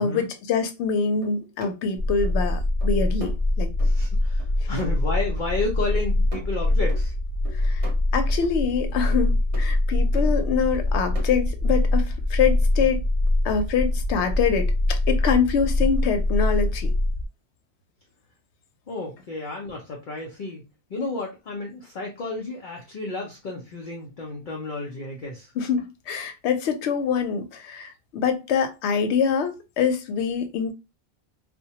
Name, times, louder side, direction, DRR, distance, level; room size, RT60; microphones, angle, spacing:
voice 1, 0.0-3.3 3.6-3.7 4.6-4.8 7.5-7.8 8.1-13.0 13.4-16.9 25.6-30.7, left 6 dB, 85° left, 0.9 m, -25 dB
sound 1, 1.2-1.8 2.2-2.6 2.8-3.4 3.8-3.9 4.4-4.5 4.8-5.5 5.9-6.1 6.3-7.1 7.4-8.0 8.4-8.6 9.1-9.7 10.1-10.4 10.7-11.3, left 1 dB, 40° right, 0.7 m, -42 dB
sound 2, 2.0-17.3, left 1 dB, 80° right, 0.9 m, -23 dB
voice 2, 3.8-7.1 18.9-25.5, left 3 dB, 55° left, 0.6 m, -32 dB
2.1 x 2.1 x 2.7 m
omnidirectional pair, 1.1 m